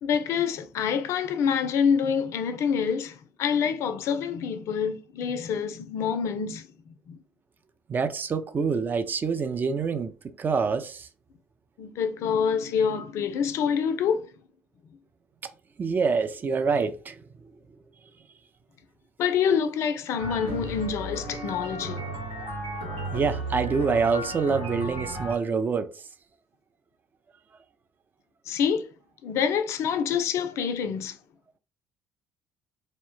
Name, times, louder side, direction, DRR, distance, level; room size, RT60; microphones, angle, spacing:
voice 1, 0.0-7.2 11.8-14.3 19.2-22.0 28.5-28.9 29.2-31.2, left 7 dB, 60° left, 0.3 m, -26 dB
voice 2, 7.9-10.1 10.4-11.1 15.8-17.2 23.1-25.9, right 5 dB, 35° right, 0.4 m, -26 dB
sound 1, 20.2-25.4, right 2 dB, 80° right, 1.0 m, -34 dB
2.0 x 2.0 x 3.0 m
hypercardioid pair, 55°, 6 cm